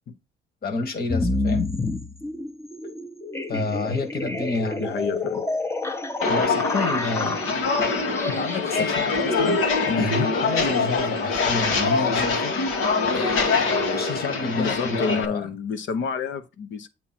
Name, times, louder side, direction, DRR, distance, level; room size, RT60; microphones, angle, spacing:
voice 1, 0.6-1.7 3.5-5.2 6.2-7.4 8.3-9.6 10.0-12.5 13.1-15.5, left 3 dB, 50° left, 1.7 m, -29 dB
sound 1, 1.1-15.2, left 2 dB, 15° left, 0.8 m, -31 dB
voice 2, 4.8-5.4 8.8-8.9 9.9-10.1 14.5-16.9, left 5 dB, 70° left, 1.0 m, -28 dB
Walk footsteps, 6.2-15.2, left 4 dB, 85° left, 1.6 m, -24 dB
8.4 x 3.0 x 5.9 m
cardioid pair, 90°, 20 cm